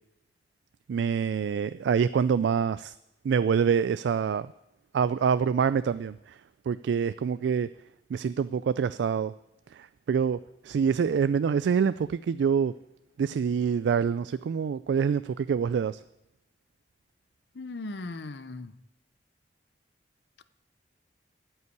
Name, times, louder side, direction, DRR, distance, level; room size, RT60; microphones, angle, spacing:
voice 1, 0.9-2.9 3.2-4.5 4.9-6.4 6.7-7.7 8.1-9.3 9.7-12.7 13.2-16.0, right 6 dB, 75° right, 0.3 m, -26 dB
voice 2, 17.5-18.7, left 2 dB, 70° left, 0.7 m, -38 dB
12.5 x 5.6 x 9.2 m
head